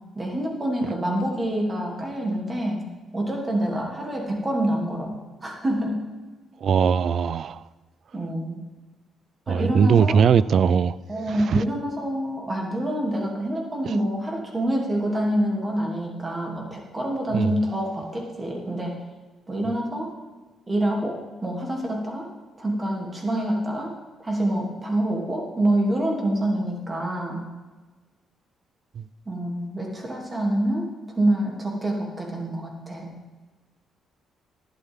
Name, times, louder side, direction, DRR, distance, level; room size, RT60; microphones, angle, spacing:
voice 1, 0.1-2.8 3.1-5.2 5.4-6.0 8.1-8.6 9.5-10.2 11.1-19.0 19.5-20.1 20.7-22.2 22.6-23.9 24.2-27.4 29.3-30.9 31.2-33.2, right 1 dB, 25° right, 0 dB, 2.8 m, -26 dB
voice 2, 6.6-7.6 9.5-11.0 11.3-11.6 13.8-13.9 17.3-17.5 29.0-29.1, right 7 dB, 60° right, 18 dB, 0.3 m, -20 dB
12.0 x 11.0 x 3.7 m, 1.3 s
cardioid pair, 90°, 0 cm